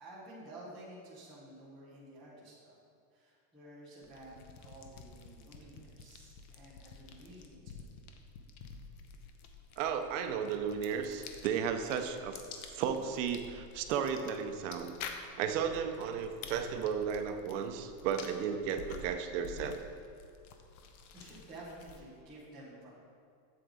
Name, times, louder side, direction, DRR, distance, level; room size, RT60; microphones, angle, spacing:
voice 1, 0.0-2.8 3.1-7.8 21.1-22.9, right 1 dB, ahead, -12 dB, 0.3 m, -51 dB
sound 1, 4.0-22.2, left 5 dB, 60° left, 0.9 m, -50 dB
voice 2, 9.8-12.4 12.8-14.9 15.4-19.8, right 7 dB, 50° right, 7 dB, 0.6 m, -34 dB
7.8 x 7.7 x 3.7 m, 2.4 s
supercardioid pair, 170°, 49 cm